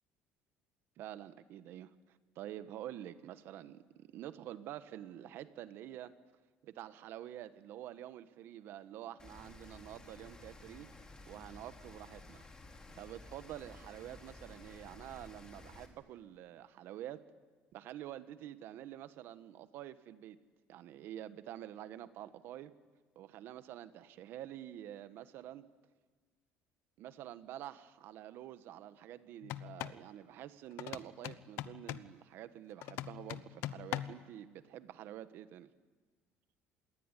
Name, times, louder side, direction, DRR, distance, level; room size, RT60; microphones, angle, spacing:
voice 1, 1.0-1.9 2.3-6.1 6.6-10.9 11.3-12.4 13.0-17.2 17.7-20.4 20.7-22.7 23.1-25.6 27.0-35.7, right 12 dB, 55° right, 12 dB, 1.4 m, -48 dB
Rain, 9.2-15.9, left 2 dB, 15° left, 2.8 m, -54 dB
sound 1, 29.4-30.0 30.8-32.1 32.8-34.3, left 14 dB, 65° left, 0.9 m, -42 dB
26.5 x 20.5 x 10.0 m, 1.4 s
cardioid pair, 165°, 5 cm